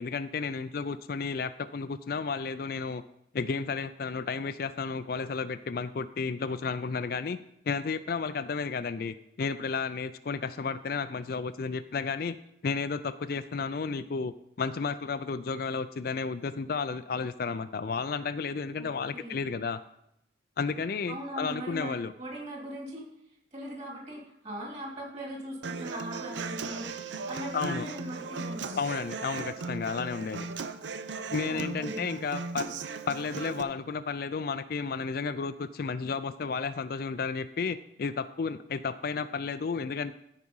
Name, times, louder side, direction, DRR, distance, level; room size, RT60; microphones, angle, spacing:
voice 1, 0.0-3.0 3.3-7.4 7.7-12.4 12.6-19.8 20.6-22.1 27.5-27.9 28.8-30.5 31.3-32.7 33.1-40.1, left 5 dB, 50° left, 12 dB, 0.4 m, -32 dB
voice 2, 18.8-19.4 21.1-23.1 23.5-28.8 31.5-32.0, equal, 35° right, -2 dB, 3.0 m, -40 dB
Human voice / Acoustic guitar, 25.6-33.6, right 4 dB, 75° right, 0.6 m, -37 dB
14.0 x 4.9 x 5.5 m, 0.78 s
head